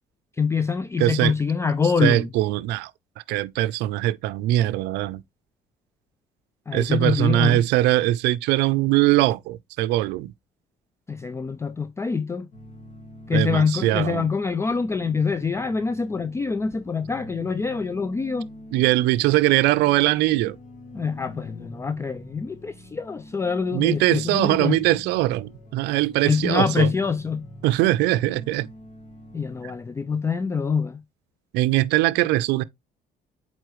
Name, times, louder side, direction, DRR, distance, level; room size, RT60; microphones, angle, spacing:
voice 1, 0.4-2.3 6.7-7.6 11.1-12.5 13.3-18.5 20.9-24.8 26.2-27.4 29.3-31.0, left 5 dB, 15° left, 0.3 m, -25 dB
voice 2, 1.0-1.3 2.0-2.9 3.3-5.2 6.7-10.3 13.3-14.3 18.7-20.6 23.7-26.9 27.6-28.7 31.5-32.6, right 16 dB, 90° right, 0.5 m, -21 dB
sound 1, 12.5-29.8, left 1 dB, 50° left, 2.0 m, -44 dB
7.9 x 4.2 x 3.0 m
cardioid pair, 110°, 17 cm